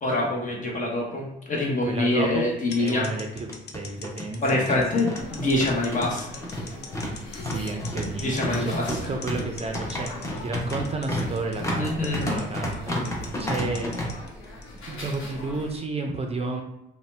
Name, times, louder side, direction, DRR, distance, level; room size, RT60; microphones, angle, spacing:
voice 1, 0.0-3.1 4.4-6.4 8.0-9.1 11.8-12.3, left 2 dB, 40° left, -2 dB, 0.9 m, -25 dB
voice 2, 1.8-2.4 2.8-4.7 4.9-5.2 7.4-13.9 14.9-16.6, right 3 dB, 30° right, 2 dB, 0.5 m, -32 dB
sound 1, 2.0-2.1 2.4-2.5 3.3-14.1, equal, 15° left, 0.8 m, -31 dB
sound 2, 2.7-15.3, left 5 dB, 55° left, 0.6 m, -42 dB
sound 3, 5.2-15.8, left 1 dB, 85° left, 0.9 m, -41 dB
2.7 x 2.2 x 3.2 m, 0.91 s
cardioid pair, 90°, 20 cm